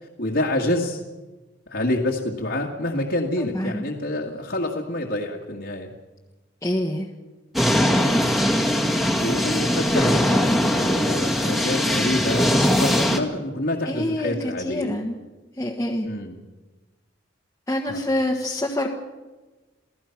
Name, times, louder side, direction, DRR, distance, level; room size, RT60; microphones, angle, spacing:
voice 1, 0.2-1.0 1.7-5.9 7.8-8.2 9.2-14.9 16.0-16.4 17.9-18.1, left 1 dB, 60° left, -2 dB, 2.1 m, -27 dB
voice 2, 3.4-3.8 6.6-7.1 8.0-8.4 13.8-15.2 15.6-16.1 17.7-18.9, left 1 dB, 15° left, -2 dB, 1.5 m, -26 dB
sound 1, 7.5-13.2, equal, ahead, 1.8 m, -21 dB
28.5 x 16.5 x 6.0 m, 1.2 s
head